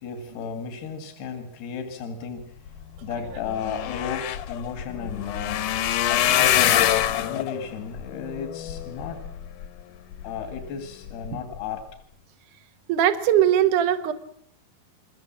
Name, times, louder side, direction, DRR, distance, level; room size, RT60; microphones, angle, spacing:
voice 1, 0.0-2.5 3.0-5.7 6.1-9.2 10.2-11.8, left 6 dB, 85° left, 7 dB, 4.1 m, -34 dB
sound 1, 3.0-3.1 3.3-9.7 10.2-10.6 11.1-11.3 11.5-11.6, left 11 dB, 65° left, 2.3 m, -25 dB
voice 2, 12.9-14.1, right 10 dB, 60° right, 9 dB, 2.7 m, -20 dB
30.0 x 22.0 x 7.4 m, 0.68 s
omnidirectional pair, 4.5 m